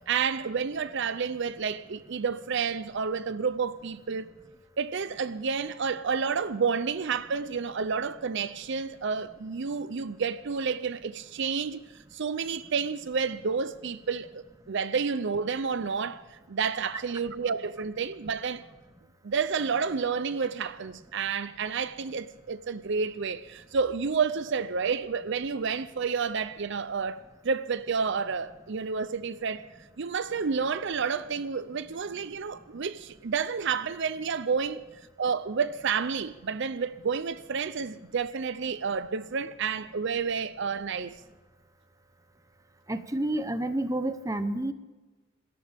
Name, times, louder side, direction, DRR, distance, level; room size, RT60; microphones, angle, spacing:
voice 1, 0.1-4.3 4.8-11.8 12.1-18.6 19.2-29.7 30.0-34.8 35.2-41.1, right 5 dB, 60° right, 0.5 m, -30 dB
voice 2, 42.9-44.7, right 1 dB, 15° right, 0.9 m, -29 dB
27.0 x 14.0 x 3.5 m
head